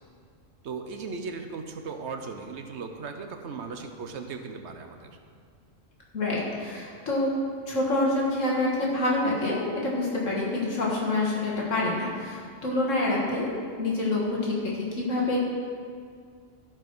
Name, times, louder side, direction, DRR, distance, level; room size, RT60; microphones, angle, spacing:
voice 1, 0.6-5.2, right 4 dB, 65° right, 6 dB, 1.0 m, -37 dB
voice 2, 6.1-7.3 7.7-13.5 13.8-15.4, left 2 dB, 75° left, -4 dB, 2.1 m, -27 dB
13.5 x 4.8 x 6.0 m, 2.2 s
omnidirectional pair, 1.3 m